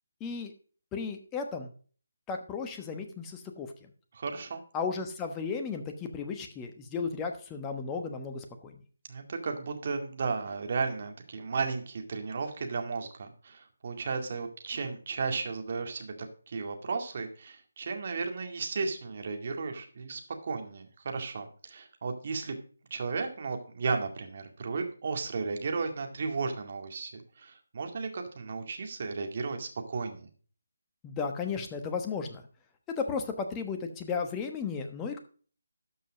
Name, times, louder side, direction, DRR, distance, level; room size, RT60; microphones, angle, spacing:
voice 1, 0.2-0.5 0.9-1.7 2.3-3.9 4.7-8.8 31.0-32.4 33.0-35.2, left 5 dB, 15° left, 5 dB, 1.1 m, -34 dB
voice 2, 4.1-4.6 9.1-16.2 16.5-22.6 22.9-30.3, right 4 dB, 45° right, 4 dB, 2.1 m, -34 dB
12.5 x 5.5 x 5.0 m, 0.41 s
figure-of-eight pair, 155°, 0 cm